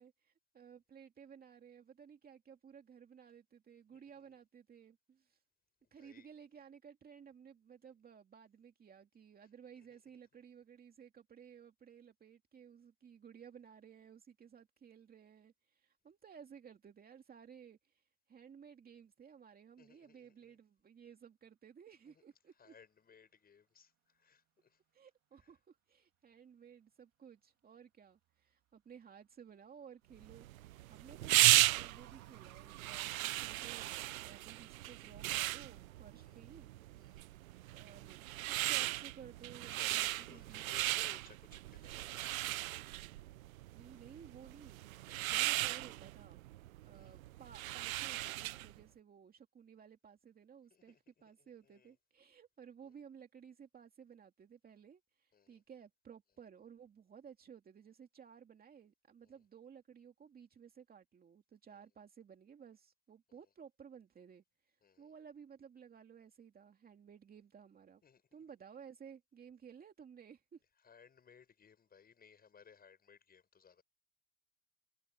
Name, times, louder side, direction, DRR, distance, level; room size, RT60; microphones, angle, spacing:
voice 1, 0.0-5.4 5.9-22.7 24.9-36.7 37.7-40.8 43.7-44.8 45.3-46.4 46.8-68.0 68.3-70.6, right 7 dB, 20° right, 2.5 m, -57 dB
voice 2, 3.9-4.3 5.8-6.3 9.8-10.0 19.8-20.6 22.1-22.2 22.6-24.8 25.3-25.5 36.1-36.4 36.9-37.3 39.7-42.8 45.0-45.3 46.9-47.2 50.7-51.0 51.4-51.9 52.8-52.9 55.3-55.6 59.2-59.4 61.7-61.8 63.3-63.4 64.8-65.1 68.0-68.2 70.8-73.8, left 7 dB, 20° left, 7.1 m, -63 dB
sound 1, 28.0-28.5 29.9-33.9, right 13 dB, 40° right, 3.1 m, -62 dB
sound 2, 30.2-48.8, right 16 dB, 80° right, 0.9 m, -36 dB
hypercardioid pair, 115°, 40 cm